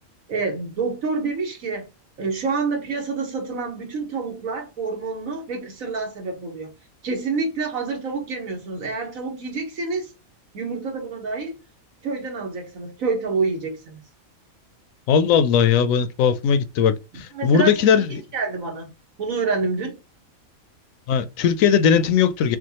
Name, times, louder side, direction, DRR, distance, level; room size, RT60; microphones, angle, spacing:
voice 1, 0.3-1.9 2.2-6.7 7.0-10.1 10.5-11.6 12.0-14.0 17.3-17.8 18.1-18.9 19.2-20.0, right 4 dB, 70° right, 1.7 m, -27 dB
voice 2, 15.1-18.2 21.1-22.6, left 7 dB, 75° left, 0.9 m, -19 dB
6.0 x 2.3 x 2.9 m
omnidirectional pair, 1.5 m